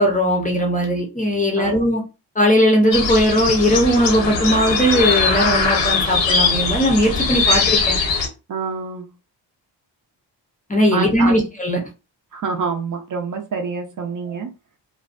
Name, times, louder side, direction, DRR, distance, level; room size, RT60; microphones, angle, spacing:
voice 1, 0.0-2.0 2.4-8.0 10.7-11.8, equal, 20° left, 0.4 m, -18 dB
sound 1, 2.9-8.3, left 4 dB, 90° left, 0.7 m, -20 dB
voice 2, 8.5-9.1 10.9-11.4 12.3-14.5, right 4 dB, 45° right, 0.5 m, -26 dB
2.4 x 2.2 x 2.4 m
wide cardioid pair, 155°, 44 cm